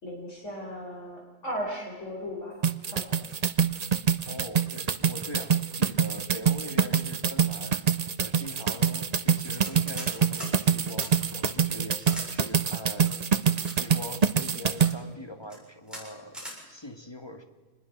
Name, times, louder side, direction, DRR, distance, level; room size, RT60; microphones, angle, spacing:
voice 1, 0.0-2.6 2.9-3.3, equal, 50° left, -1 dB, 5.2 m, -36 dB
sound 1, 2.6-14.9, right 6 dB, 50° right, 0.4 m, -25 dB
voice 2, 4.2-7.8 8.2-13.1 13.8-17.4, left 1 dB, 15° left, 5 dB, 1.9 m, -42 dB
sound 2, 9.6-10.1 10.4-10.5 11.0-11.1 12.0-12.3 13.0-13.7 14.5-14.9 15.4-15.6 15.9-16.0 16.3-16.6, equal, ahead, 7.3 m, -41 dB
26.0 x 20.5 x 6.1 m, 1.3 s
omnidirectional pair, 1.6 m